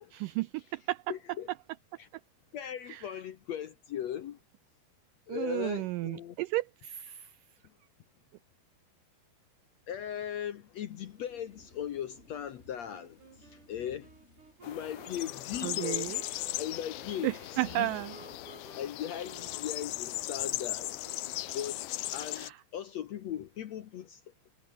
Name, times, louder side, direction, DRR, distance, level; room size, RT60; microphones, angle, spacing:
voice 1, 0.1-1.0 2.9-3.1 5.3-7.3 15.6-16.2 17.2-18.1 22.4-22.6, right 19 dB, 85° right, 1.9 m, -33 dB
voice 2, 1.1-1.5 2.0-2.1 2.5-4.4 5.3-6.4 9.9-14.1 14.7-16.2 16.6-18.0 18.8-20.9 21.5-21.8 22.1-24.5, left 10 dB, 65° left, 1.8 m, -38 dB
sound 1, 10.9-21.6, left 1 dB, 15° left, 7.5 m, -59 dB
Wind instrument woodwind instrument, 12.8-22.3, right 4 dB, 55° right, 6.7 m, -55 dB
sound 2, 14.6-22.5, left 17 dB, 90° left, 2.7 m, -38 dB
omnidirectional pair, 4.3 m